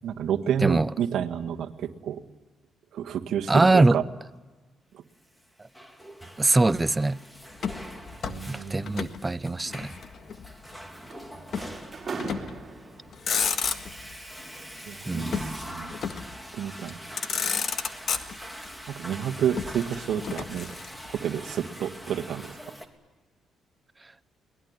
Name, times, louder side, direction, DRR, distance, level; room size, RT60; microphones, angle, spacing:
voice 1, 0.0-2.2 2.9-4.0 8.2-8.9 14.9-16.0 16.5-17.0 18.9-20.7 21.1-22.7, right 9 dB, 75° right, 1.7 m, -30 dB
voice 2, 3.5-4.0 6.4-7.2 8.5-9.9 15.1-15.8, right 2 dB, 20° right, 0.7 m, -23 dB
Water / Toilet flush, 5.4-22.9, equal, 5° left, 3.0 m, -43 dB
Motor vehicle (road), 7.6-9.2 9.5-10.5 11.5-11.8 12.2-12.6 13.1-14.1 15.3-16.4 16.9-17.0 17.2-18.7 19.6-21.2, left 6 dB, 55° left, 1.7 m, -31 dB
sound 1, 10.4-13.4 14.5-16.4 16.9-17.1 17.6-17.8, right 4 dB, 40° right, 4.8 m, -41 dB
23.0 x 20.0 x 9.5 m
cardioid pair, 90°, 0 cm